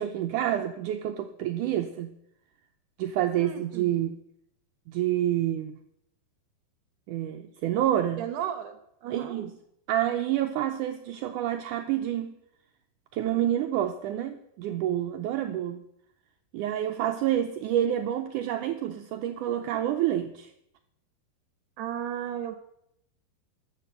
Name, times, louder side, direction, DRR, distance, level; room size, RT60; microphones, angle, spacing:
voice 1, 0.0-2.2 3.0-4.2 4.9-5.8 7.1-8.3 9.1-9.6 9.9-12.4 13.1-15.8 16.5-20.5, right 11 dB, 90° right, 6 dB, 1.8 m, -28 dB
voice 2, 3.4-3.9 8.2-9.4 21.8-22.5, right 10 dB, 75° right, 8 dB, 2.0 m, -34 dB
13.5 x 7.3 x 7.8 m, 0.78 s
omnidirectional pair, 4.3 m